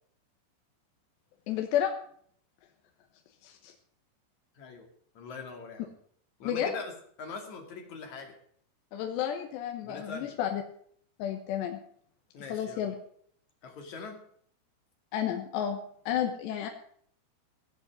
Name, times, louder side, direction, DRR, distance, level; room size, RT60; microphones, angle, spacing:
voice 1, 1.5-1.9 3.4-3.7 6.4-6.7 8.9-10.6 11.2-11.8 12.5-12.9 15.1-15.8 16.1-16.7, left 10 dB, 85° left, 3 dB, 3.4 m, -31 dB
voice 2, 4.5-4.9 5.1-5.9 6.4-6.9 7.2-8.3 9.8-10.4 12.3-12.8 13.6-14.2, left 4 dB, 50° left, 3 dB, 3.3 m, -42 dB
17.5 x 7.8 x 7.4 m, 0.62 s
omnidirectional pair, 4.9 m